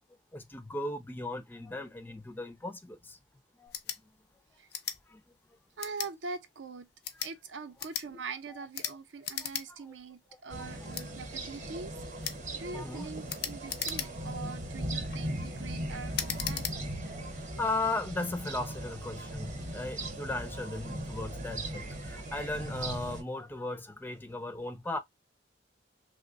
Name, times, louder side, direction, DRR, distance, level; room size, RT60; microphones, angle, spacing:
voice 1, 0.3-3.2 3.5-3.7 5.1-5.2 8.5-9.0 9.4-9.9 10.5-10.9 12.7-13.2 17.1-17.2 17.6-25.0, left 2 dB, 10° left, 0.3 m, -37 dB
sound 1, 3.7-4.0 4.7-5.0 5.8-6.1 6.9-7.3 7.8-8.1 8.7-8.9 9.2-9.7 10.0-10.1 10.9-11.1 12.2-12.4 13.3-14.3 14.9-15.2 16.1-16.8, left 9 dB, 60° left, 0.5 m, -36 dB
voice 2, 5.8-6.9 7.2-11.9 12.5-16.7, right 4 dB, 80° right, 0.6 m, -43 dB
sound 2, 10.5-23.2, right 1 dB, 40° right, 0.8 m, -38 dB
3.0 x 2.1 x 3.7 m
head